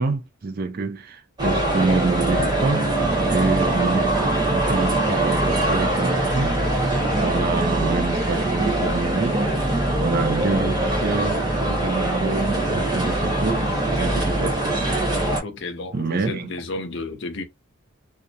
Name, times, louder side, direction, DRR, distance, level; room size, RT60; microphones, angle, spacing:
voice 1, 0.0-6.6 7.2-9.5 10.0-13.7 14.0-14.8 15.9-16.5, right 3 dB, 45° right, 0.4 m, -27 dB
sound 1, 1.4-15.4, right 1 dB, 20° right, 0.8 m, -22 dB
voice 2, 15.4-17.4, left 2 dB, 55° left, 0.6 m, -32 dB
2.4 x 2.0 x 2.7 m
head